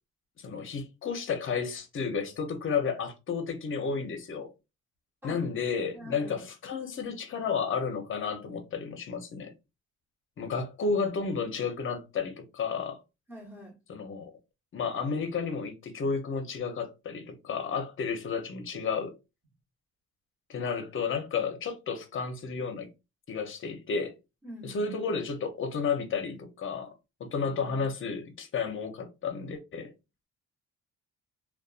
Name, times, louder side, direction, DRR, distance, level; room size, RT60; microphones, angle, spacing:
voice 1, 0.4-4.5 5.2-9.5 10.4-13.0 13.9-14.3 14.7-19.2 20.5-22.9 23.3-24.1 24.6-26.9 27.2-29.9, left 5 dB, 45° left, 0.7 m, -32 dB
voice 2, 5.9-6.5 13.3-13.7 24.4-24.9, equal, 5° right, 1.2 m, -45 dB
2.5 x 2.2 x 2.4 m
cardioid pair, 90°, 30 cm